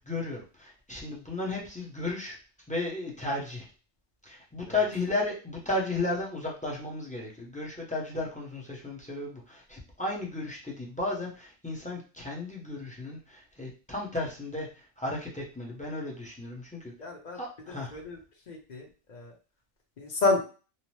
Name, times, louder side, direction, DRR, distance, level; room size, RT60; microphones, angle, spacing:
voice 1, 0.1-2.4 2.7-3.7 4.2-16.9 17.3-17.9, left 2 dB, 10° left, -3 dB, 0.4 m, -34 dB
voice 2, 17.0-17.4 17.9-18.2 18.5-18.8 19.1-19.3 20.0-20.4, left 3 dB, 45° left, 1 dB, 0.7 m, -28 dB
2.8 x 2.0 x 3.0 m, 0.35 s
omnidirectional pair, 1.2 m